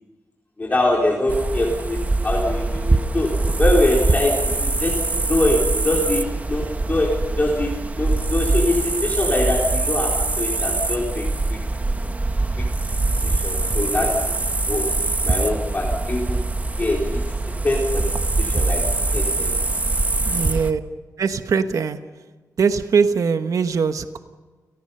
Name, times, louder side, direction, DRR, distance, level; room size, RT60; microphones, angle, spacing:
voice 1, 0.6-11.6 12.6-12.7 13.2-14.4 14.7-16.4 16.8-17.2 17.6-19.6, left 1 dB, 25° left, -2 dB, 3.8 m, -24 dB
sound 1, 1.3-20.7, right 2 dB, 25° right, 1.2 m, -23 dB
voice 2, 20.2-20.8 21.2-22.0 22.6-24.2, right 5 dB, 65° right, 9 dB, 1.1 m, -21 dB
30.0 x 18.5 x 5.6 m, 1.3 s
wide cardioid pair, 125°, 6 cm